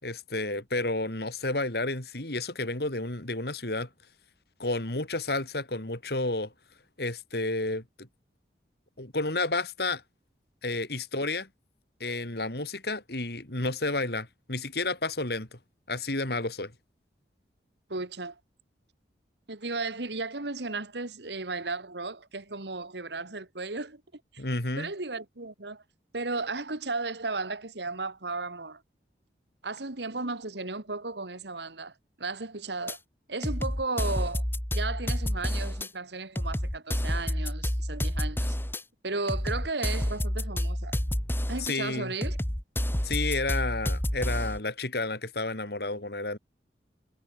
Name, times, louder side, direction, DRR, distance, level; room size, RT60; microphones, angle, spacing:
voice 1, 0.0-3.9 4.6-6.5 7.0-8.1 9.0-10.0 10.6-11.5 12.0-15.6 15.9-16.7 24.4-24.9 41.6-42.1 43.0-46.4, left 2 dB, 60° left, 3.2 m, -31 dB
voice 2, 17.9-18.4 19.5-24.0 24.3-24.4 24.8-25.8 26.1-28.8 29.6-31.9 32.2-33.0 33.3-34.4 34.7-38.6 39.0-41.0 41.5-42.4, right 3 dB, 70° right, 2.0 m, -34 dB
sound 1, 32.9-33.0 33.4-35.9 36.3-38.8 39.3-41.7 42.2-44.6, equal, 10° left, 1.7 m, -29 dB
head